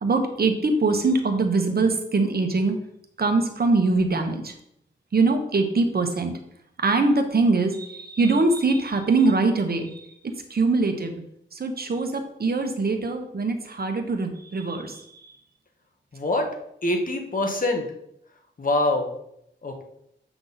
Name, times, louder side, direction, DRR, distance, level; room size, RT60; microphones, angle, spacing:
voice 1, 0.0-2.8 3.2-4.5 5.1-6.3 6.8-10.1 10.5-11.1 11.5-15.1, right 3 dB, 50° right, 5 dB, 1.2 m, -23 dB
voice 2, 16.1-16.5 16.8-17.8 18.6-19.1 19.6-19.8, left 2 dB, 45° left, 3 dB, 1.5 m, -24 dB
8.1 x 5.8 x 4.1 m, 0.75 s
wide cardioid pair, 105°, 20 cm